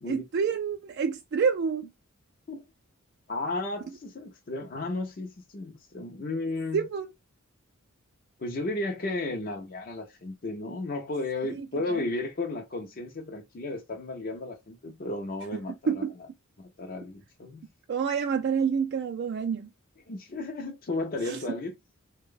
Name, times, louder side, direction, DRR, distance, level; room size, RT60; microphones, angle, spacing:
voice 1, 0.0-1.9 6.7-7.1 11.6-12.0 15.9-16.1 17.9-19.7 21.3-21.4, right 6 dB, 50° right, 0.3 m, -28 dB
voice 2, 3.3-6.9 8.4-16.0 16.6-17.7 20.1-21.7, left 2 dB, 40° left, 0.5 m, -34 dB
3.3 x 2.1 x 3.7 m
head